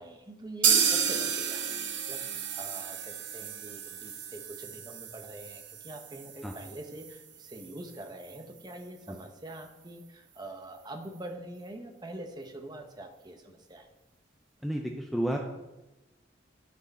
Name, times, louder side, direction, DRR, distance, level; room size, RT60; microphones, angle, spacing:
voice 1, 0.0-13.9, right 1 dB, 20° right, 5 dB, 0.9 m, -44 dB
sound 1, 0.6-8.4 8.7-8.8 9.1-9.2 9.6-9.7, right 7 dB, 85° right, 0.9 m, -32 dB
voice 2, 14.6-15.4, right 1 dB, ahead, 1 dB, 0.5 m, -31 dB
13.0 x 4.6 x 4.1 m, 1.0 s
head